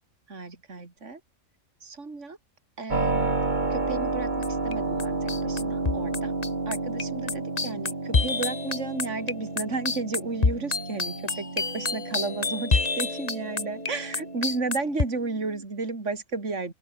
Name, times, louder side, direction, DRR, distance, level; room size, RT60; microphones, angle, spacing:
voice 1, 0.3-1.2 1.8-2.4 2.8-3.4 3.7-6.3 6.7-16.7, right 3 dB, 60° right, 3.6 m, -33 dB
Keyboard (musical), 2.9-15.6, right 3 dB, 35° right, 2.4 m, -31 dB
sound 1, 4.4-4.7 5.0-15.0, left 4 dB, 30° left, 1.4 m, -28 dB
open air
omnidirectional pair, 1.5 m